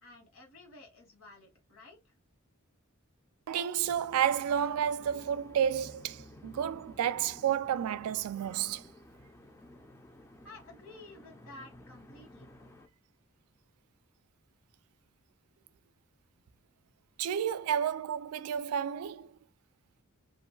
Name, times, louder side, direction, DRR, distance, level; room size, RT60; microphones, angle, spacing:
voice 1, 0.0-2.1 10.4-12.5, left 2 dB, 65° left, 1.2 m, -52 dB
voice 2, 3.5-8.8 17.2-19.3, right 9 dB, 85° right, 0.3 m, -31 dB
sound 1, 3.8-12.9, left 1 dB, 10° left, 0.3 m, -54 dB
2.5 x 2.2 x 3.1 m
head